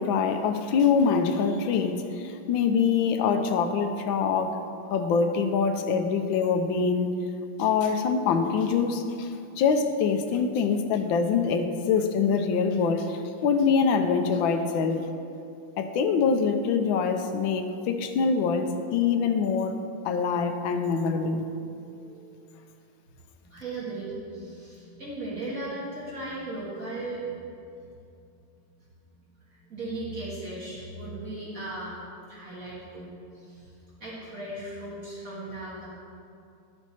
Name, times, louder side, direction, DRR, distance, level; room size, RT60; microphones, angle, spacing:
voice 1, 0.0-4.6 4.9-7.1 7.6-9.3 9.6-15.1 15.8-19.8 20.0-21.5, left 5 dB, 75° left, 7 dB, 1.3 m, -24 dB
voice 2, 21.8-22.4 23.4-27.4 29.5-32.0 32.3-35.9, right 2 dB, 40° right, -9 dB, 2.2 m, -37 dB
11.5 x 6.1 x 4.2 m, 2.6 s
omnidirectional pair, 2.3 m